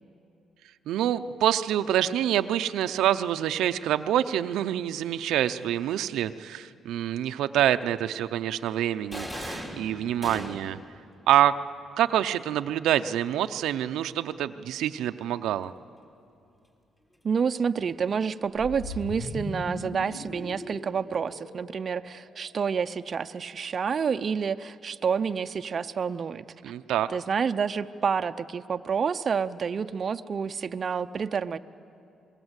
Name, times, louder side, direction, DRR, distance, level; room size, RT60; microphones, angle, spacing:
voice 1, 0.9-10.8 11.3-11.6 12.0-15.7 26.6-27.1, right 11 dB, 85° right, 10 dB, 0.6 m, -26 dB
sound 1, 9.1-10.9, equal, 20° left, 3.6 m, -37 dB
voice 2, 17.2-26.5 27.1-31.6, right 6 dB, 45° right, 9 dB, 0.6 m, -29 dB
sound 2, 18.6-22.8, left 1 dB, 75° left, 6.7 m, -39 dB
26.5 x 21.0 x 8.2 m, 2.6 s
cardioid pair, 90°, 0 cm